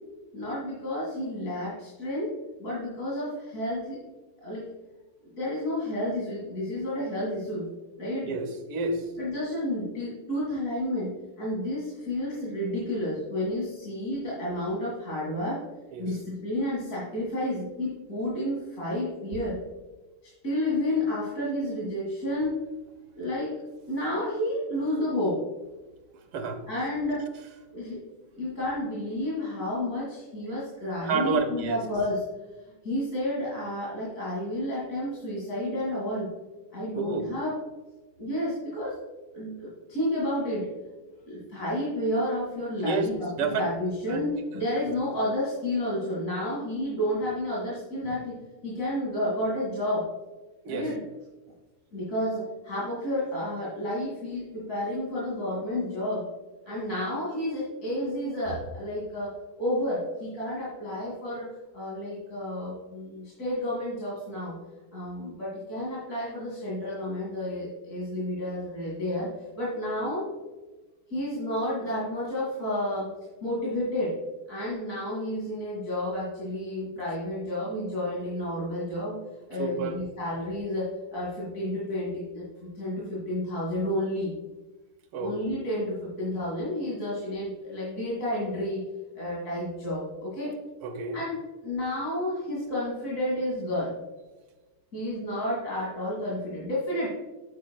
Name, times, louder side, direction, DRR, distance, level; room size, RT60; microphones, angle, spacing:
voice 1, 0.3-2.3 2.6-4.0 4.4-4.6 5.3-7.6 8.0-8.3 9.2-15.6 16.0-19.6 20.4-22.5 23.2-23.5 23.9-25.4 26.7-27.3 27.7-28.0 28.4-32.2 32.6-36.3 36.7-37.5 38.2-38.9 39.3-40.7 41.3-48.4 48.6-50.0 50.7-51.0 51.9-56.2 56.7-59.3 59.6-61.5 61.7-64.5 64.9-69.3 69.6-70.3 71.1-73.1 73.4-74.1 74.5-79.2 79.5-84.3 85.2-88.8 89.1-90.5 91.1-91.4 91.6-93.9 94.9-97.1, left 1 dB, 40° left, -7 dB, 2.5 m, -31 dB
voice 2, 8.2-9.1 15.9-16.1 26.3-26.6 31.0-31.8 37.0-37.3 42.8-43.6 44.1-44.3 44.5-44.9 50.7-50.9 79.6-80.0 85.1-85.4 90.8-91.2, right 4 dB, 85° right, 6 dB, 1.9 m, -30 dB
8.5 x 8.3 x 2.3 m, 1.2 s
omnidirectional pair, 2.4 m